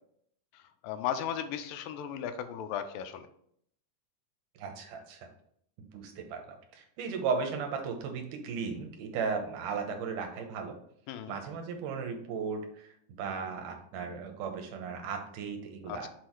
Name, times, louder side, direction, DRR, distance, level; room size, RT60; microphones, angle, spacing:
voice 1, 0.5-3.3 11.1-11.4 15.9-16.1, left 9 dB, 85° left, 9 dB, 2.3 m, -36 dB
voice 2, 4.6-5.3 5.8-10.7 11.3-12.9 13.2-16.1, right 5 dB, 75° right, 4 dB, 2.5 m, -36 dB
6.3 x 4.6 x 4.6 m, 0.68 s
omnidirectional pair, 4.0 m